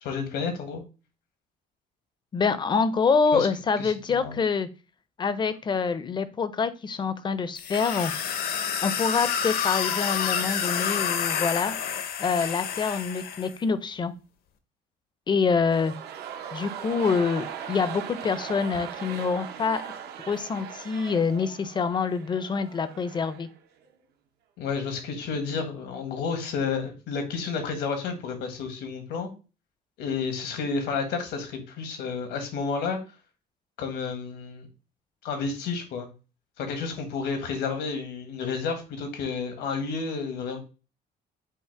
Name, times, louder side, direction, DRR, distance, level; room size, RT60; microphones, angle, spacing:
voice 1, 0.0-0.8 3.3-3.5 3.8-4.4 24.6-29.3 30.0-33.0 33.8-34.7 35.2-36.1 36.6-40.6, left 5 dB, 80° left, 6 dB, 1.3 m, -31 dB
voice 2, 2.3-4.7 5.2-8.1 8.8-11.8 12.2-14.1 15.3-15.9 16.5-19.8 20.3-23.5, left 5 dB, 25° left, 13 dB, 0.5 m, -26 dB
sound 1, 7.6-13.5, left 8 dB, 65° left, 0.7 m, -29 dB
sound 2, 15.5-23.6 23.8-23.9, right 8 dB, 75° right, 0.7 m, -39 dB
5.6 x 2.1 x 4.5 m, 0.32 s
cardioid pair, 110°, 17 cm